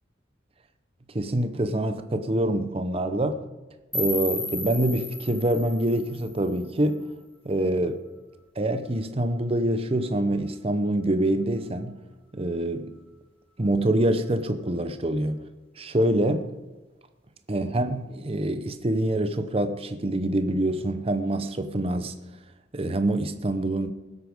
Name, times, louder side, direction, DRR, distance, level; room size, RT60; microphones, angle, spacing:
voice 1, 1.1-3.4 3.9-7.0 7.4-8.0 8.6-12.0 12.3-12.9 13.6-15.4 15.8-16.5 17.5-22.1 22.7-23.9, right 1 dB, 30° right, 0.7 m, -25 dB
sound 1, 3.9-6.9, left 1 dB, 10° left, 2.0 m, -34 dB
19.0 x 8.4 x 5.1 m
head